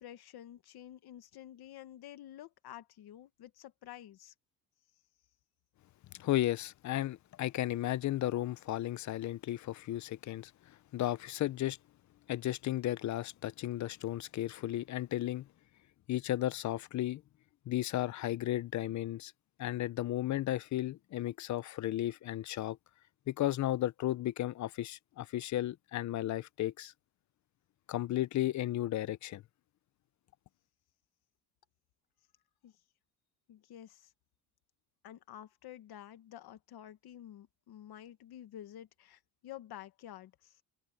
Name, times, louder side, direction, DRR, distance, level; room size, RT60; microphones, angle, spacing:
voice 1, 0.0-4.3 32.6-32.8 33.5-34.1 35.0-40.6, left 12 dB, 75° left, 1.3 m, -50 dB
voice 2, 6.1-11.8 12.3-15.5 16.1-17.2 17.7-19.3 19.6-22.8 23.3-26.9 27.9-29.4, left 14 dB, 50° left, 0.5 m, -34 dB
cardioid pair, 170°, 38 cm